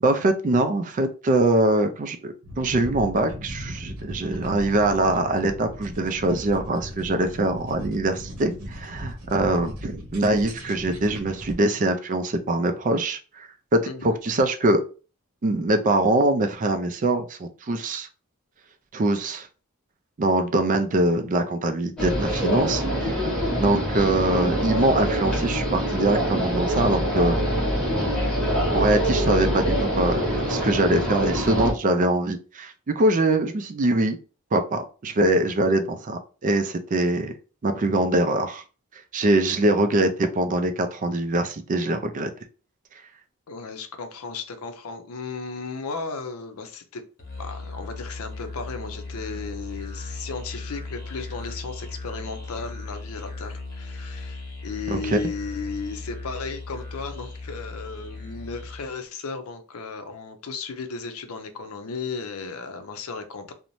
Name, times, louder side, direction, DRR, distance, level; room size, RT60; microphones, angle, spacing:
voice 1, 0.0-14.8 15.4-18.1 18.9-19.5 20.2-22.8 23.6-27.4 28.7-34.2 34.5-37.3 37.6-38.6 39.1-42.3 54.9-55.2, right 2 dB, 35° right, 0.4 m, -23 dB
sound 1, 2.4-11.6, equal, 85° right, 0.8 m, -38 dB
sound 2, 22.0-31.7, equal, 5° left, 0.9 m, -25 dB
voice 2, 43.5-47.0 47.4-63.5, left 4 dB, 70° left, 0.5 m, -35 dB
Musical instrument, 47.2-58.9, left 3 dB, 40° left, 0.9 m, -37 dB
2.6 x 2.1 x 3.0 m
head